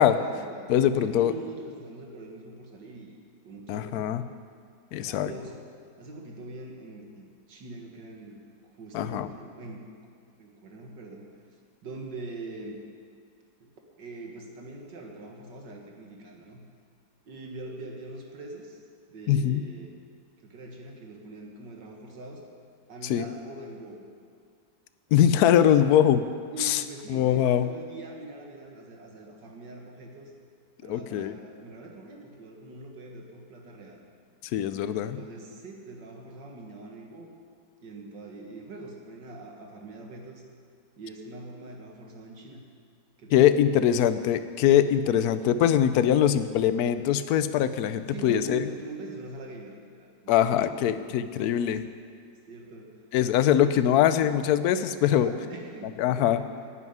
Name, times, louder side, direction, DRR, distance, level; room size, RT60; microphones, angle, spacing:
voice 1, 0.0-3.2 3.4-4.3 5.0-5.6 6.0-8.4 8.7-9.8 10.4-11.3 11.8-12.8 13.6-13.7 14.0-16.6 17.3-18.8 19.1-19.9 20.4-22.4 22.9-24.1 26.5-30.3 30.8-34.1 35.0-37.3 37.8-40.4 41.0-42.6 43.2-43.5 48.1-50.9 51.4-51.6 52.5-52.9 53.6-53.9 55.1-56.7, right 2 dB, 70° right, 1 dB, 2.2 m, -43 dB
voice 2, 0.7-1.3 3.7-4.2 4.9-5.3 8.9-9.3 19.3-19.6 23.0-23.3 25.1-26.2 26.6-26.8 27.1-27.7 30.9-31.3 34.5-35.2 43.3-48.6 50.3-51.8 53.1-55.3 56.0-56.4, left 10 dB, 70° left, 12 dB, 1.0 m, -22 dB
11.0 x 8.5 x 9.3 m, 2.2 s
omnidirectional pair, 2.0 m